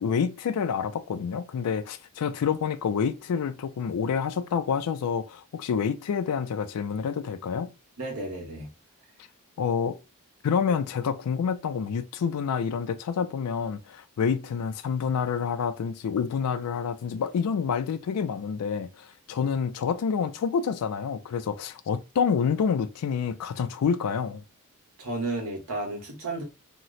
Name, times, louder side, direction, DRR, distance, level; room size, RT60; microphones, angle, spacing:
voice 1, 0.0-7.7 9.6-10.0 10.4-24.4, left 6 dB, 90° left, 0.4 m, -28 dB
voice 2, 8.0-8.7 25.0-26.4, right 2 dB, 80° right, 1.3 m, -32 dB
2.9 x 2.1 x 3.8 m
head